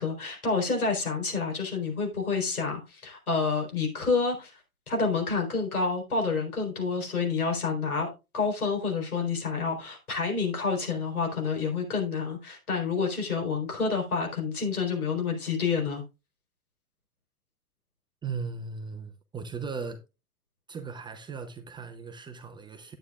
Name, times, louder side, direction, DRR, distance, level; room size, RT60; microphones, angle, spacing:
voice 1, 0.0-4.6 4.9-8.1 8.3-16.0, left 4 dB, 80° left, 4.2 m, -28 dB
voice 2, 18.2-20.0 20.7-23.0, right 5 dB, 10° right, 0.7 m, -37 dB
11.0 x 8.9 x 2.4 m
figure-of-eight pair, 105°, 43 cm